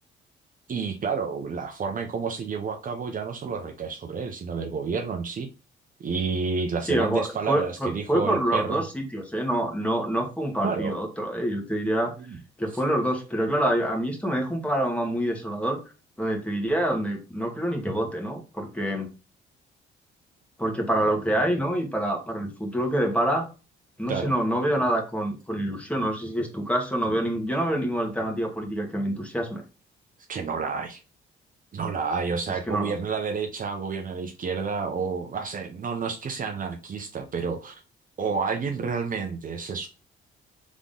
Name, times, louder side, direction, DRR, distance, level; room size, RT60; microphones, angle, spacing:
voice 1, 0.7-5.5 6.0-8.8 10.6-10.9 12.3-12.4 24.1-24.3 30.3-31.0 31.7-37.8 38.2-39.9, right 5 dB, 45° right, 5 dB, 0.7 m, -30 dB
voice 2, 6.9-12.1 12.6-15.8 16.2-19.1 20.6-23.5 24.0-29.6 32.7-32.9, right 1 dB, 5° left, 1 dB, 1.7 m, -26 dB
3.7 x 3.6 x 3.7 m, 0.33 s
cardioid pair, 90°, 20 cm